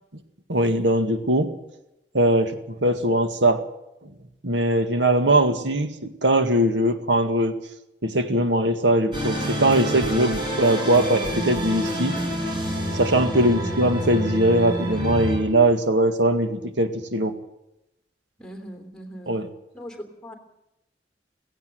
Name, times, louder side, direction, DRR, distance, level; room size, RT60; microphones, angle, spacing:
voice 1, 0.5-1.5 2.1-3.6 4.4-7.6 8.0-12.2 12.9-17.3 19.3-19.5, right 1 dB, 85° right, 8 dB, 2.0 m, -21 dB
sound 1, 9.1-15.4, equal, 25° right, 6.5 m, -28 dB
voice 2, 13.3-13.8 18.4-19.4 19.7-20.3, equal, 5° left, 5 dB, 3.1 m, -39 dB
16.5 x 16.5 x 9.3 m, 0.86 s
head